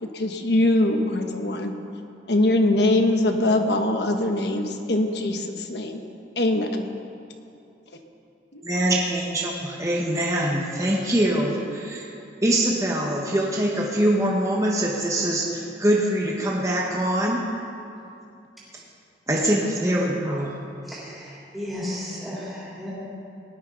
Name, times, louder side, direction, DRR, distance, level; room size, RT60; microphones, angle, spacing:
voice 1, 0.0-1.7 2.3-6.0 6.4-6.9 8.5-8.6, left 1 dB, 65° left, 5 dB, 1.2 m, -22 dB
voice 2, 8.6-12.0 12.4-17.4 19.3-20.5, right 1 dB, 20° right, -3 dB, 1.3 m, -23 dB
voice 3, 20.9-22.9, left 1 dB, ahead, -9 dB, 3.6 m, -34 dB
19.0 x 13.5 x 4.0 m, 2.6 s
head